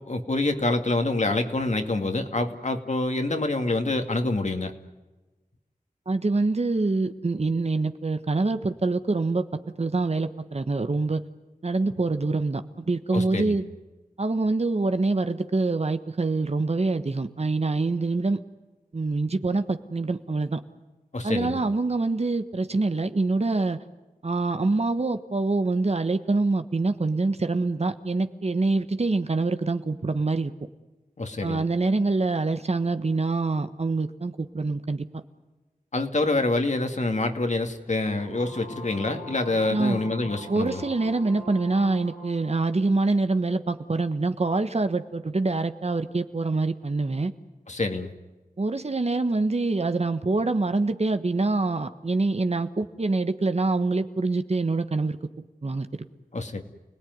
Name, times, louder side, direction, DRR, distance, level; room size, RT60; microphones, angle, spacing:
voice 1, 0.0-4.7 13.1-13.6 21.1-21.6 31.2-31.6 35.9-40.8 47.7-48.1 56.3-56.6, left 2 dB, 50° left, 5 dB, 2.5 m, -26 dB
voice 2, 6.1-9.4 9.8-11.2 11.6-13.6 14.2-18.4 18.9-20.6 21.2-23.8 24.2-30.5 31.4-35.1 39.7-40.0 40.5-47.3 48.6-55.2 55.6-55.9, right 3 dB, 45° right, 9 dB, 1.4 m, -25 dB
sound 1, 38.2-42.7, left 1 dB, 80° left, 6.7 m, -42 dB
29.5 x 18.5 x 9.6 m, 1.2 s
wide cardioid pair, 60°, 15 cm